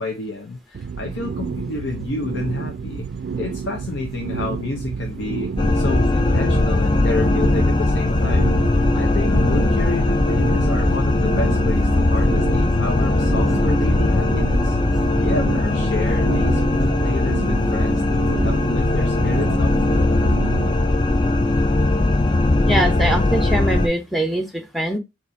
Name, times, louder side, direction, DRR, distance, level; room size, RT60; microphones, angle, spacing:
voice 1, 0.0-3.1 3.4-8.6 8.9-14.8 15.2-20.1, left 3 dB, 80° left, 0.7 m, -29 dB
sound 1, 0.7-20.7, right 5 dB, 60° right, 0.3 m, -30 dB
sound 2, 5.6-23.9, left 2 dB, 25° left, 0.3 m, -19 dB
voice 2, 22.7-25.0, right 1 dB, ahead, 0.7 m, -22 dB
4.1 x 2.5 x 3.6 m
head